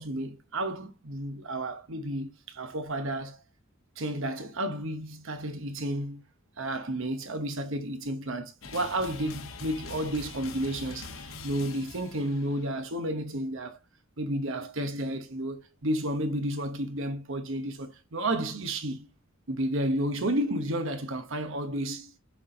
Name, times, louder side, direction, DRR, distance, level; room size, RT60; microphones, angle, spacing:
voice 1, 0.0-3.4 4.0-6.2 6.6-13.8 14.2-19.1 19.5-22.1, right 1 dB, 60° right, 1.0 m, -32 dB
sound 1, 8.6-12.8, left 3 dB, 65° left, 1.0 m, -43 dB
7.2 x 4.3 x 3.8 m
head